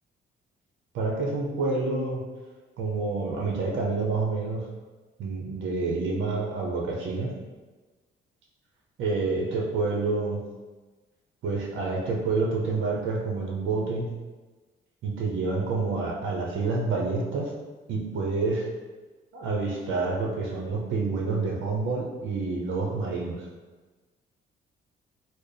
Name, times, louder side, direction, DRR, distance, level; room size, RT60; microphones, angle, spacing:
voice 1, 0.9-2.2 2.8-4.7 5.2-7.3 9.0-10.4 11.4-14.1 15.0-17.5 17.9-18.7 19.3-23.5, right 3 dB, 75° right, -1 dB, 0.7 m, -28 dB
4.3 x 2.0 x 3.3 m, 1.3 s
cardioid pair, 90°, 20 cm